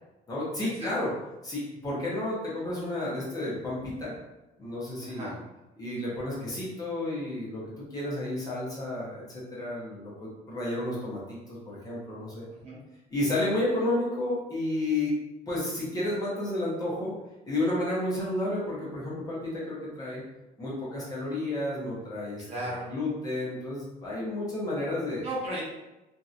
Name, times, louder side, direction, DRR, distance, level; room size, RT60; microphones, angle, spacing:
voice 1, 0.3-1.1 1.4-4.1 4.6-5.4 5.8-12.5 13.1-15.1 15.5-17.2 17.5-20.2 20.6-25.2, left 1 dB, 25° left, -7 dB, 1.0 m, -31 dB
voice 2, 5.0-5.4 12.6-12.8 22.4-22.9 25.2-25.6, right 1 dB, 40° right, -6 dB, 1.0 m, -34 dB
2.9 x 2.7 x 2.5 m, 1.0 s
cardioid pair, 145°, 16 cm